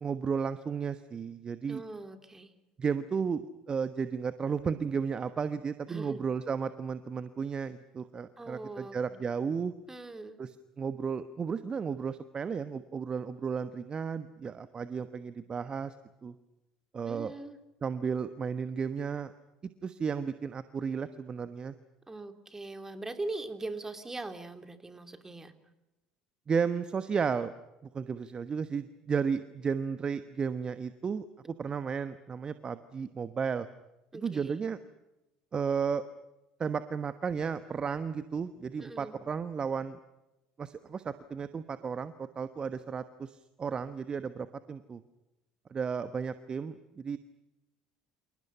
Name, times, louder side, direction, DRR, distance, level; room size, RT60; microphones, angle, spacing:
voice 1, 0.0-1.8 2.8-9.7 10.4-10.5 10.8-15.9 16.2-16.3 16.9-17.3 17.8-19.3 19.8-21.7 26.5-27.5 27.9-33.7 34.1-34.8 35.5-36.0 36.6-40.0 40.6-45.0 45.7-47.2, right 6 dB, 30° right, 12 dB, 1.1 m, -33 dB
voice 2, 1.6-2.5 5.9-6.2 8.4-9.2 9.9-10.4 17.1-17.6 22.1-25.5 34.1-34.6 38.8-39.2, right 2 dB, 15° right, 7 dB, 3.0 m, -41 dB
29.0 x 27.5 x 5.7 m, 0.98 s
figure-of-eight pair, 65°, 3 cm